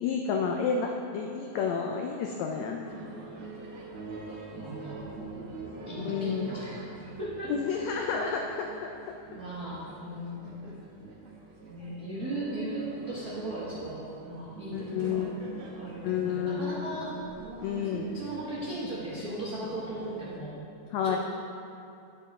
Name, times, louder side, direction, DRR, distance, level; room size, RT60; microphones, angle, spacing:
voice 1, 0.0-2.9 6.0-6.5 7.5-8.7 14.7-15.4 16.0-16.8 17.6-18.1 20.9-21.2, left 6 dB, 90° left, 2 dB, 1.5 m, -30 dB
sound 1, 2.8-20.4, right 3 dB, 65° right, 1.3 m, -44 dB
voice 2, 4.5-5.1 5.9-7.5 9.3-10.8 11.6-15.3 15.8-17.1 17.7-20.6 21.0-21.2, right 1 dB, 90° right, -7 dB, 0.8 m, -38 dB
9.9 x 7.2 x 4.3 m, 2.6 s
omnidirectional pair, 3.8 m